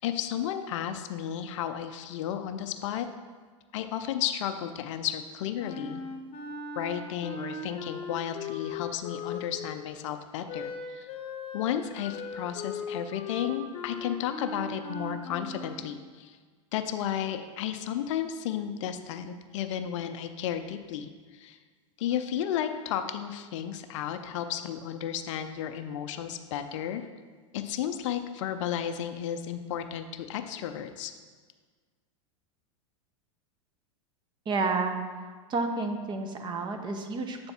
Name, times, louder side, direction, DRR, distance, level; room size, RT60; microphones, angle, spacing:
voice 1, 0.0-3.1 3.7-6.0 6.8-11.1 11.5-16.4 16.7-21.6 22.0-27.1 27.5-31.1, left 10 dB, 65° left, 8 dB, 0.5 m, -33 dB
Wind instrument woodwind instrument, 5.6-9.7 10.5-15.9, left 4 dB, 35° left, 0.8 m, -38 dB
voice 2, 34.5-35.0 35.5-37.5, right 3 dB, 25° right, 5 dB, 0.7 m, -30 dB
7.9 x 3.5 x 4.1 m, 1.5 s
hypercardioid pair, 110°, 17 cm